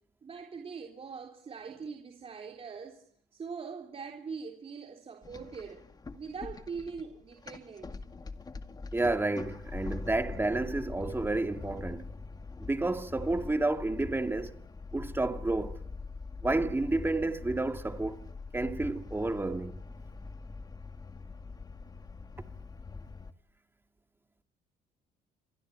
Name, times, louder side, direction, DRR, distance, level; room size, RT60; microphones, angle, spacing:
voice 1, 0.2-3.0 3.3-5.9 6.1-8.0, right 5 dB, 35° right, 3.7 m, -42 dB
sound 1, 5.2-23.3, left 4 dB, 25° left, 2.0 m, -43 dB
voice 2, 8.9-12.0 12.6-14.6 14.9-15.8 16.4-18.2 18.5-19.7, right 2 dB, 15° right, 2.2 m, -30 dB
28.5 x 23.0 x 8.8 m
cardioid pair, 110°, 17 cm